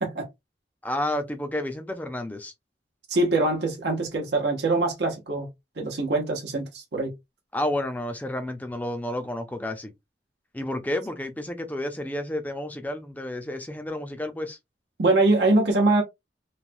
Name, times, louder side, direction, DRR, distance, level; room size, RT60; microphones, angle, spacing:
voice 1, 0.8-2.5 7.5-9.9 10.5-14.6, left 1 dB, 10° left, 0.5 m, -31 dB
voice 2, 3.1-5.5 5.8-7.1 15.0-16.0, right 2 dB, 75° right, 0.8 m, -23 dB
3.1 x 2.1 x 2.6 m
head